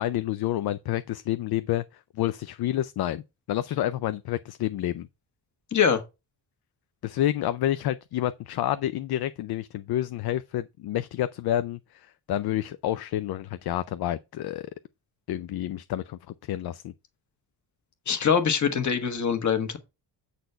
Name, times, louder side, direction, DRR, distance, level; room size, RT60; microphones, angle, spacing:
voice 1, 0.0-1.8 2.2-3.2 3.5-5.1 7.0-14.7 15.3-16.9, left 13 dB, 60° left, 0.5 m, -29 dB
voice 2, 18.1-19.8, left 7 dB, 40° left, 1.5 m, -23 dB
8.0 x 4.2 x 5.6 m
cardioid pair, 140°, 42 cm